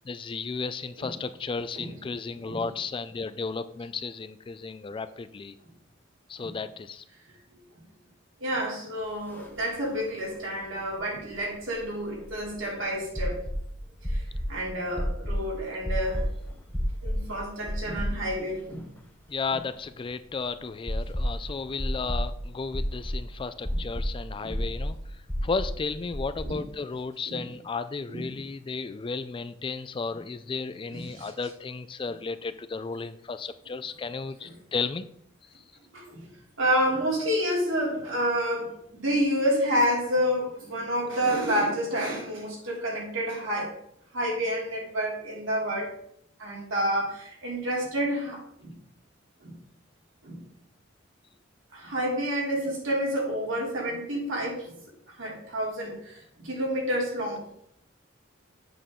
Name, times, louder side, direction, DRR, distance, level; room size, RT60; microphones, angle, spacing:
voice 1, 0.0-5.6 6.3-7.0 19.3-35.1, left 4 dB, 25° left, 12 dB, 0.3 m, -34 dB
voice 2, 8.4-13.4 14.0-14.2 14.5-16.2 17.0-18.9 24.4-24.6 26.4-26.6 27.3-27.4 28.1-28.2 30.9-31.3 35.9-36.2 36.6-43.7 44.1-45.9 46.4-48.7 49.4-49.5 50.2-50.4 51.7-54.7 55.1-57.4, equal, 80° right, -3 dB, 3.1 m, -29 dB
sound 1, 9.4-9.5 9.7-9.8 11.3-12.6 13.2-13.6 14.0-14.5 15.0-15.4 15.9-16.3 16.7-17.2 17.7-18.5 18.8-18.9 20.9-21.4 21.8-22.3 22.7-23.2 23.6-24.1 24.5-24.9 25.3-25.7 26.1-26.4, equal, 10° left, 0.9 m, -29 dB
7.9 x 6.6 x 3.7 m, 0.70 s
head